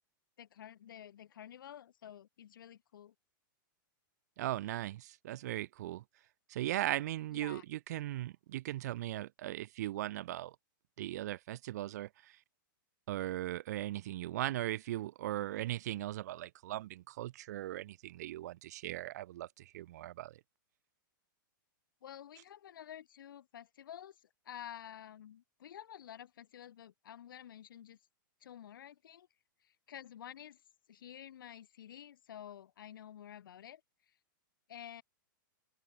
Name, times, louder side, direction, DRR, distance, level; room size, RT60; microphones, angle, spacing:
voice 1, 0.4-3.1 7.3-7.6 22.0-28.0 28.4-29.3 29.6-30.6 30.9-33.8 34.7-35.0, left 10 dB, 75° left, 7.7 m, -50 dB
voice 2, 4.4-6.0 6.5-10.6 11.0-12.4 13.1-20.4, right 14 dB, 50° right, 0.4 m, -38 dB
open air
supercardioid pair, 165°, 11 cm